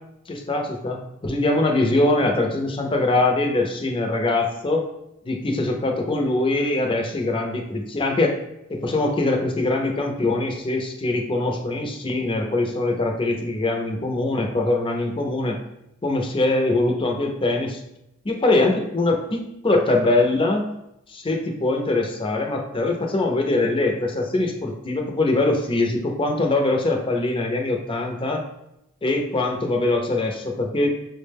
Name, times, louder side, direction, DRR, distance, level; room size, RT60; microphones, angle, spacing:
voice 1, 0.3-4.8 5.2-8.3 8.7-15.6 16.0-17.8 18.2-20.7 21.1-28.4 29.0-30.9, left 2 dB, 25° left, 2 dB, 0.5 m, -22 dB
5.9 x 2.1 x 3.3 m, 0.83 s
head